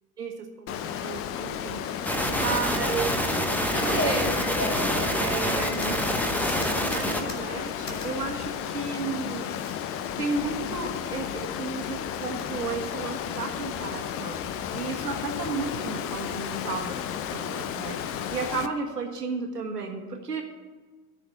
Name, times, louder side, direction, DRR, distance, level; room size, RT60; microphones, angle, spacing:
voice 1, 0.2-3.3 3.8-4.5 5.2-6.0 6.8-14.4 14.7-20.4, right 4 dB, 80° right, 3 dB, 1.6 m, -33 dB
Water, 0.7-18.7, left 9 dB, 30° left, 0.6 m, -33 dB
sound 1, 2.0-7.2, equal, 5° left, 1.0 m, -27 dB
sound 2, 3.7-8.1 8.4-8.9 9.6-9.8 10.1-10.5 10.9-11.5 12.1-12.8, left 1 dB, 85° left, 1.3 m, -34 dB
13.0 x 5.0 x 8.5 m, 1.3 s
figure-of-eight pair, 75°, 47 cm